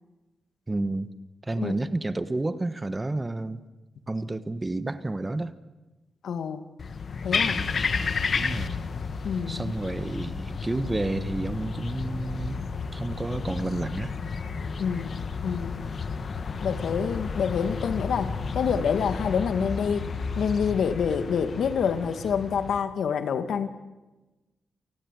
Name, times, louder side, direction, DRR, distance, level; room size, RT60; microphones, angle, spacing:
voice 1, 0.7-1.1 1.4-3.6 4.1-5.5 7.3-7.9 8.3-8.8 9.5-12.6 12.9-14.1, right 2 dB, 15° right, 13 dB, 1.2 m, -30 dB
voice 2, 6.2-6.6 7.2-7.6 9.2-9.7 14.8-15.9 16.6-20.1 20.4-23.7, left 6 dB, 75° left, 10 dB, 2.2 m, -27 dB
sound 1, 6.8-22.8, left 5 dB, 45° left, 1.4 m, -32 dB
29.0 x 19.0 x 9.4 m, 1.1 s
wide cardioid pair, 150°, 0 cm